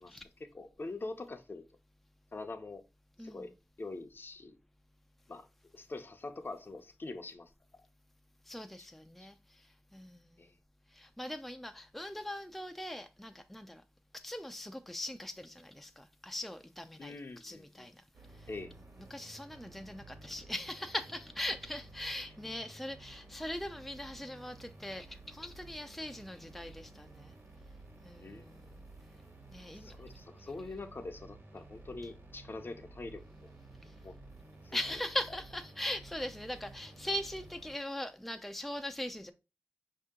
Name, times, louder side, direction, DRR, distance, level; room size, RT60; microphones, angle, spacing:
voice 1, 0.0-1.6 2.3-2.8 3.2-3.5 3.8-4.6 5.3-5.5 5.7-7.5 10.4-10.5 17.0-17.9 18.5-18.7 28.2-28.5 29.7-33.5 34.0-34.2 34.6-34.8, left 3 dB, 50° left, 0.6 m, -44 dB
voice 2, 3.2-3.5 8.5-10.5 10.9-13.8 14.1-18.0 18.3-18.5 19.0-27.3 28.0-28.8 29.5-29.9 33.8-33.9 34.7-39.3, left 1 dB, 5° left, 0.3 m, -41 dB
sound 1, 18.1-37.7, right 2 dB, 55° right, 1.3 m, -53 dB
5.2 x 2.8 x 3.6 m
wide cardioid pair, 95°, 5 cm